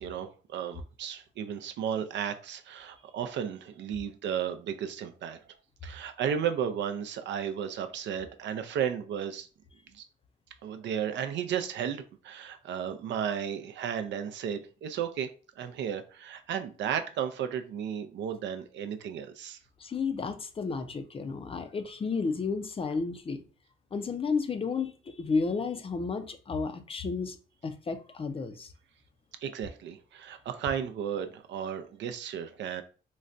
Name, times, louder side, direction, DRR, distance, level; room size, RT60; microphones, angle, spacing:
voice 1, 0.0-5.4 5.8-9.5 9.9-10.1 10.6-15.3 15.6-19.6 29.4-32.8, right 8 dB, 65° right, 0.4 m, -34 dB
voice 2, 19.8-23.4 23.9-27.4 27.6-28.7, left 4 dB, 30° left, 0.4 m, -32 dB
3.9 x 2.2 x 2.5 m
cardioid pair, 90°, 20 cm